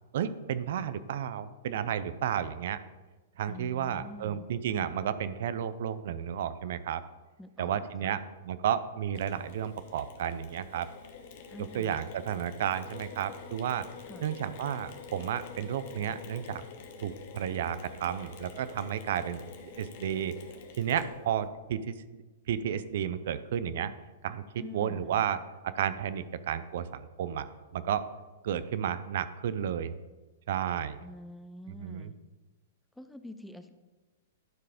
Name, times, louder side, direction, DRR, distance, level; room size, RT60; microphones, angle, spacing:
voice 1, 0.1-2.8 3.4-7.0 7.6-10.9 11.7-13.9 14.2-16.6 17.0-20.4 20.8-23.9 24.2-24.4 24.7-25.4 25.6-27.5 27.7-28.0 28.4-29.9 30.5-31.0 31.8-32.1, right 9 dB, 65° right, 13 dB, 0.5 m, -32 dB
voice 2, 3.5-4.5 7.4-8.1 11.5-12.1 14.1-14.3 24.6-25.2 31.0-32.2 33.0-33.7, left 1 dB, 5° left, 10 dB, 0.5 m, -46 dB
Mechanisms, 9.1-21.5, left 5 dB, 55° left, 1.3 m, -47 dB
12.0 x 4.7 x 5.0 m, 1.2 s
hypercardioid pair, 130°, 0 cm